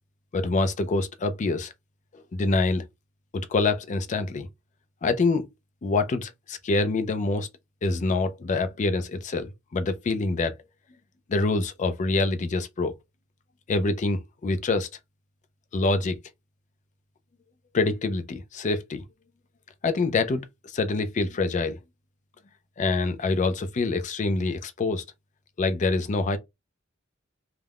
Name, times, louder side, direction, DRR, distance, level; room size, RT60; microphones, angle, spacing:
voice 1, 0.3-1.7 2.1-2.8 3.3-4.5 5.0-5.5 5.8-7.5 7.8-10.5 11.3-12.9 13.7-14.9 15.7-16.2 17.7-19.0 19.8-21.8 22.8-25.0 25.6-26.4, left 3 dB, 40° left, 0.4 m, -26 dB
2.4 x 2.1 x 3.4 m
head